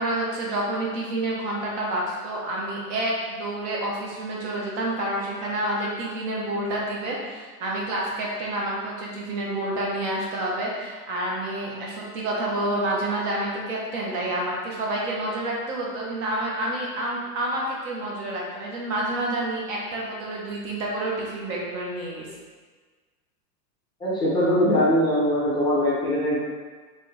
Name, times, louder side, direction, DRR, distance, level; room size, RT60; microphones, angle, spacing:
voice 1, 0.0-22.3, right 1 dB, 45° right, -3 dB, 1.0 m, -28 dB
voice 2, 24.0-26.4, equal, 10° left, -8 dB, 1.0 m, -21 dB
4.4 x 3.5 x 3.3 m, 1.4 s
supercardioid pair, 145°, 48 cm